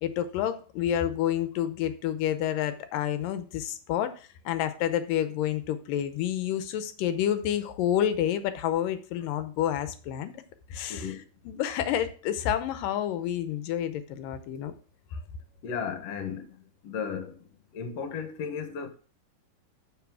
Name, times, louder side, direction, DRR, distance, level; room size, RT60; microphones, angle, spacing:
voice 1, 0.0-10.3 10.7-11.2 11.5-14.7 15.1-15.2, left 10 dB, 75° left, 2.2 m, -29 dB
voice 2, 15.6-16.5 16.8-17.3 17.7-18.9, left 6 dB, 60° left, 1.8 m, -34 dB
7.2 x 6.8 x 6.1 m
omnidirectional pair, 4.4 m